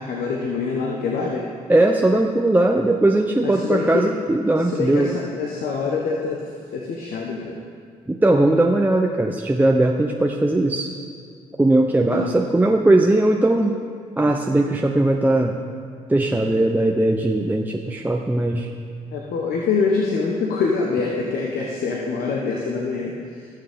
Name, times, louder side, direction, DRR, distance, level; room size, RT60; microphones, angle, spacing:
voice 1, 0.0-1.4 3.4-4.1 4.7-6.4 6.7-7.6 12.1-12.3 19.1-23.1, left 4 dB, 70° left, -1 dB, 1.1 m, -25 dB
voice 2, 1.7-5.1 8.1-10.9 11.6-13.8 14.2-15.6 16.1-18.7, right 2 dB, 10° right, 1 dB, 0.7 m, -19 dB
19.0 x 6.7 x 3.6 m, 2.1 s
supercardioid pair, 60°, 16 cm